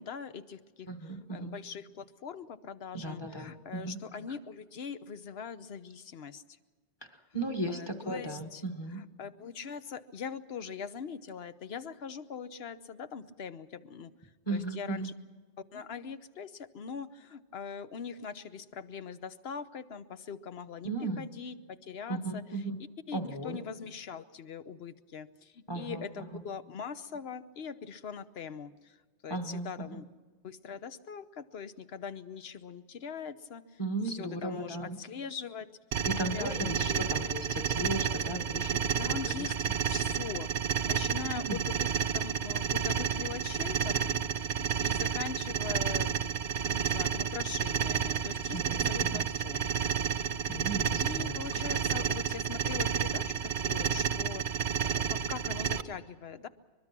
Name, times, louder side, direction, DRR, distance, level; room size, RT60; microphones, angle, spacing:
voice 1, 0.0-0.9 1.3-6.4 7.7-8.6 8.9-14.1 14.5-15.1 15.7-20.9 21.2-22.4 23.1-28.9 29.2-30.0 30.4-33.6 34.0-35.7 36.2-37.3 39.0-39.5 39.9-40.5 40.9-49.6 50.4-56.5, left 6 dB, 70° left, 12 dB, 1.1 m, -42 dB
voice 2, 0.9-1.6 2.9-4.0 4.3-4.4 7.0-9.0 14.5-15.1 20.8-21.3 22.1-22.8 23.1-23.6 25.7-26.4 29.3-30.0 33.8-35.0 36.1-39.5 41.4-41.7 48.5-49.2 50.5-51.9, right 2 dB, 25° left, 5 dB, 1.8 m, -36 dB
sound 1, 35.9-55.8, right 8 dB, 80° right, 1.1 m, -31 dB
23.5 x 22.5 x 6.1 m, 1.4 s
omnidirectional pair, 1.1 m